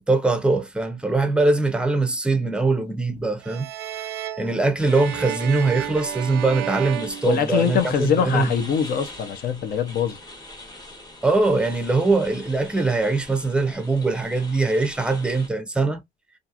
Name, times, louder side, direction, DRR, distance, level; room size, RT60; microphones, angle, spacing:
voice 1, 0.1-3.7 4.4-8.5 11.2-16.0, right 3 dB, 5° right, 0.6 m, -22 dB
sound 1, 3.4-8.0, right 13 dB, 80° right, 0.4 m, -33 dB
sound 2, 4.8-15.5, left 1 dB, 25° left, 1.2 m, -43 dB
voice 2, 7.2-10.2, left 8 dB, 60° left, 0.6 m, -23 dB
2.8 x 2.5 x 2.4 m
cardioid pair, 110°, 17 cm